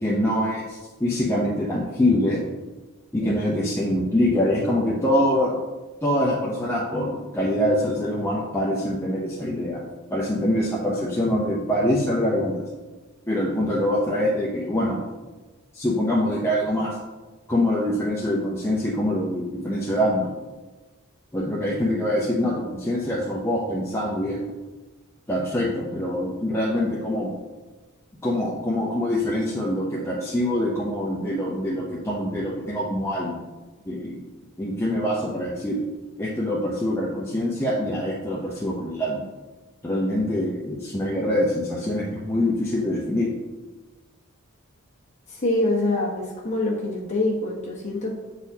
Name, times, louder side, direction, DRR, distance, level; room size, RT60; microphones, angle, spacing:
voice 1, 0.0-2.5 3.1-5.6 6.0-9.8 10.1-12.6 13.3-15.0 15.7-17.0 17.5-20.3 21.3-24.4 25.3-27.3 28.2-33.4 33.9-34.2 34.6-35.8 36.2-39.3 39.8-43.3, left 1 dB, 10° left, -5 dB, 0.6 m, -24 dB
voice 2, 45.3-48.1, left 2 dB, 35° left, -4 dB, 1.4 m, -25 dB
8.4 x 4.0 x 2.7 m, 1.2 s
head